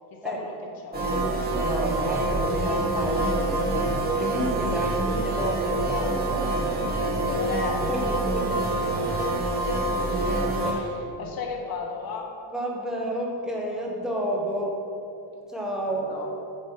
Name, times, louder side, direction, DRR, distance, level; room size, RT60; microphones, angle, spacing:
voice 1, 0.1-0.5 0.8-1.3 7.2-8.1 9.2-9.6 10.7-12.3 15.9-16.3, left 4 dB, 50° left, 1 dB, 1.4 m, -35 dB
sound 1, 0.9-10.7, right 2 dB, 20° right, 1.3 m, -26 dB
voice 2, 1.5-7.0 7.9-9.2 10.6-10.9 11.2-11.3 12.5-14.9 15.5-16.1, right 1 dB, ahead, -3 dB, 1.1 m, -31 dB
7.2 x 6.5 x 5.8 m, 2.6 s
cardioid pair, 160°, 47 cm